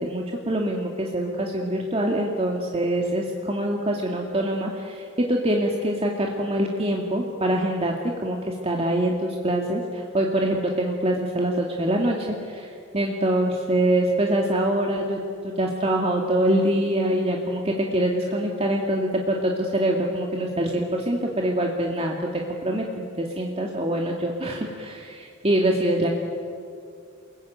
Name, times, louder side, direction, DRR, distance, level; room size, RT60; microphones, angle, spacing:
voice 1, 0.0-15.2 15.4-22.9 23.2-26.1, right 1 dB, 30° right, 0 dB, 2.2 m, -24 dB
29.0 x 22.0 x 9.2 m, 2.4 s
head